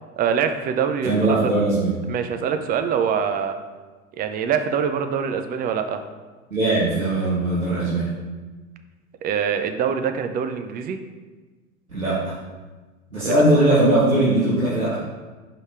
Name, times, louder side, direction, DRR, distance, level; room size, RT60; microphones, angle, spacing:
voice 1, 0.2-1.5 2.1-3.5 4.2-6.0 9.2-11.0 13.2-13.3, right 7 dB, 20° right, 7 dB, 0.5 m, -24 dB
voice 2, 1.0-2.0 6.5-8.1 11.9-12.3 13.1-15.0, right 2 dB, 90° right, -8 dB, 1.7 m, -20 dB
5.7 x 5.2 x 4.8 m, 1.3 s
figure-of-eight pair, 85°, 41 cm